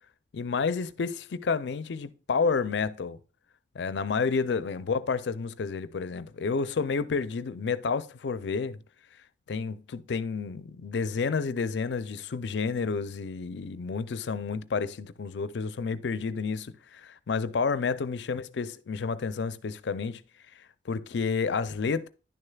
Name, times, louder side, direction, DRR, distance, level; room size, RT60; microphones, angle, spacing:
voice 1, 0.3-3.2 3.7-8.8 9.5-20.2 20.9-22.1, left 5 dB, 75° left, 0.4 m, -30 dB
10.5 x 6.5 x 2.3 m
head